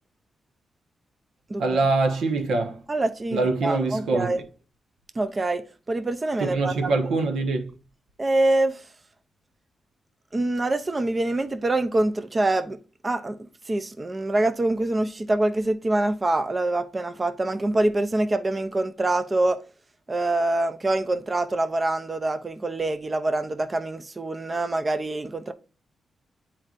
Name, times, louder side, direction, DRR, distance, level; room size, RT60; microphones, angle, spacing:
voice 1, 1.6-2.8 3.3-4.4 6.4-7.7, right 3 dB, 85° right, 1.0 m, -24 dB
voice 2, 2.9-4.4 5.2-7.1 8.2-8.9 10.3-12.8 13.0-19.6 20.1-25.5, right 2 dB, 20° right, 0.4 m, -25 dB
8.9 x 4.4 x 2.5 m
wide cardioid pair, 160°, 0 cm